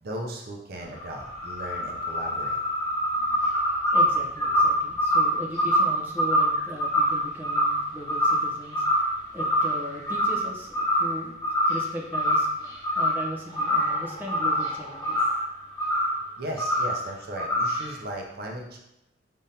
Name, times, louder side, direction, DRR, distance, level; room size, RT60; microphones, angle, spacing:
voice 1, 0.0-2.6 3.2-3.9 16.4-18.8, right 1 dB, 60° right, 0 dB, 0.6 m, -37 dB
sound 1, 0.8-8.5 8.7-9.1 9.4-10.5 10.7-11.1 11.4-11.9 12.1-13.2 13.5-15.4 15.8-16.2 16.6-17.0 17.4-17.9, equal, 20° left, 0.9 m, -24 dB
voice 2, 3.5-11.3 11.7-15.2, equal, 10° right, -3 dB, 0.8 m, -38 dB
5.0 x 3.5 x 2.8 m, 0.90 s
head